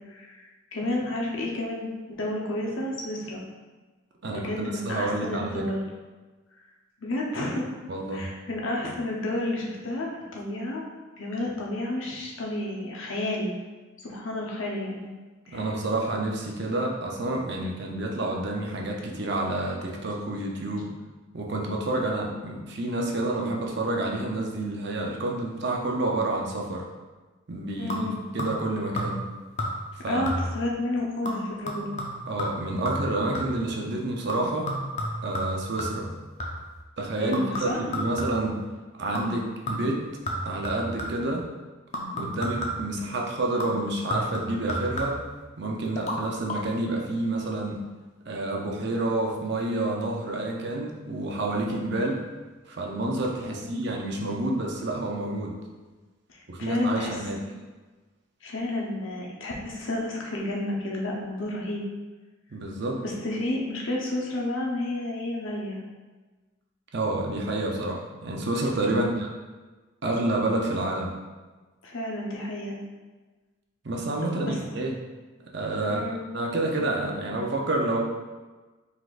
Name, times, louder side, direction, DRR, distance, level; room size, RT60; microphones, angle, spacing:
voice 1, 0.1-0.4 0.7-3.4 4.3-5.8 7.0-7.6 8.1-10.8 11.2-13.5 14.0-15.1 15.5-15.6 27.8-28.2 30.1-31.9 37.2-37.8 53.4-53.7 56.3-57.1 58.4-61.8 63.0-65.8 68.9-69.2 71.8-72.8 74.4-74.6 75.9-76.2, left 1 dB, 75° left, -2 dB, 0.9 m, -31 dB
voice 2, 4.2-5.6 7.9-8.3 15.5-20.9 21.3-26.9 27.5-28.1 28.3-29.2 29.9-30.2 32.3-34.7 35.2-36.1 37.0-38.6 39.0-40.1 40.4-41.5 42.2-45.2 45.6-47.8 48.3-52.2 52.7-55.6 56.5-57.4 62.5-63.0 66.9-69.3 70.0-71.1 73.8-74.9 75.5-76.1 76.3-78.0, right 2 dB, 55° right, -1 dB, 0.7 m, -29 dB
sound 1, 27.9-28.7 29.0-29.3 29.6-30.0 30.3-30.7 31.2-33.7 34.3-36.8 37.3-38.6 39.1-39.4 39.7-41.3 41.9-43.0 43.6-45.4 45.9-46.2 46.5-46.6, equal, 35° left, 0.6 m, -32 dB
4.6 x 4.1 x 2.5 m, 1.3 s
head